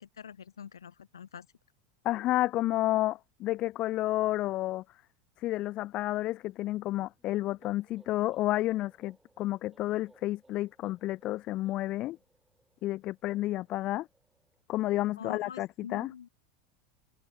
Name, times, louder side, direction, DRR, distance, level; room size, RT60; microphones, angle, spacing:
voice 1, 0.0-1.5 15.2-16.3, left 8 dB, 85° left, 0.8 m, -45 dB
voice 2, 2.0-4.8 5.4-12.2 12.8-14.1 14.7-16.1, left 16 dB, 45° left, 0.6 m, -31 dB
sound 1, 6.9-14.6, right 2 dB, 10° right, 5.1 m, -64 dB
hypercardioid pair, 85°, 2 cm